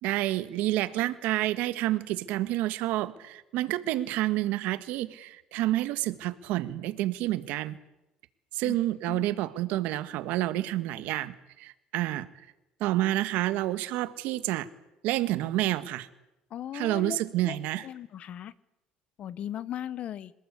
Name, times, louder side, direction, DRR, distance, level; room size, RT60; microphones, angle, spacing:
voice 1, 0.0-7.8 8.5-12.3 12.8-14.7 15.0-16.1 16.7-17.9, right 15 dB, 75° right, 12 dB, 1.7 m, -29 dB
voice 2, 16.5-17.6 17.8-18.5 19.2-20.3, left 10 dB, 45° left, 18 dB, 1.0 m, -37 dB
27.0 x 18.5 x 8.4 m, 0.96 s
cardioid pair, 130°, 3 cm